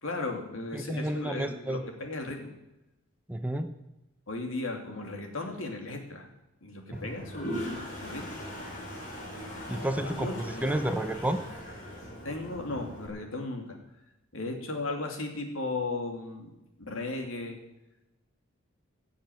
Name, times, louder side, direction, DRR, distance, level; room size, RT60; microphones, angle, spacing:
voice 1, 0.0-2.5 4.3-6.3 6.6-8.4 10.0-10.6 12.2-13.8 14.3-16.5 16.8-17.6, left 2 dB, 70° left, 3 dB, 2.8 m, -36 dB
voice 2, 0.7-1.8 3.3-3.7 9.7-11.4, right 1 dB, 5° right, 7 dB, 0.8 m, -30 dB
Toilet flush, 6.9-13.1, equal, 40° left, 4.8 m, -40 dB
16.0 x 7.1 x 9.3 m, 0.95 s
head